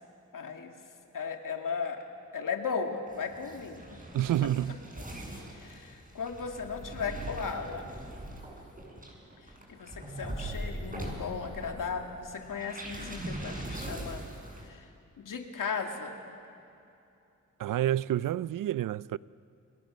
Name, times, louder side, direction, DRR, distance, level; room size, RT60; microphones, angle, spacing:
voice 1, 0.3-0.7 1.1-2.0 2.3-3.8 5.0-5.1 5.5-7.9 9.7-14.2 14.7-14.9 15.2-16.1, left 5 dB, 80° left, 2.3 m, -36 dB
sound 1, 3.1-14.7, right 1 dB, 25° right, 7.3 m, -41 dB
voice 2, 4.1-4.8 17.6-19.2, right 12 dB, 85° right, 0.5 m, -29 dB
29.0 x 21.0 x 6.5 m
cardioid pair, 55°, 32 cm